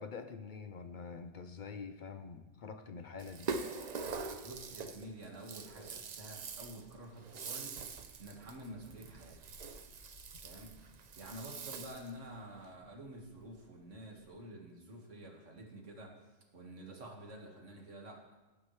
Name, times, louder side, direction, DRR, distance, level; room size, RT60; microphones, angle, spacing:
voice 1, 0.0-3.5, left 5 dB, 50° left, 9 dB, 0.6 m, -46 dB
Rattle (instrument), 3.2-12.2, right 4 dB, 45° right, 0.6 m, -44 dB
sound 1, 4.0-6.8 7.1-14.3, left 1 dB, 70° left, 4.0 m, -63 dB
voice 2, 4.4-7.8 8.2-9.4 10.4-10.7 11.2-16.1 16.5-18.2, right 1 dB, 80° right, 0 dB, 2.1 m, -49 dB
16.5 x 9.4 x 3.2 m, 1.1 s
omnidirectional pair, 1.2 m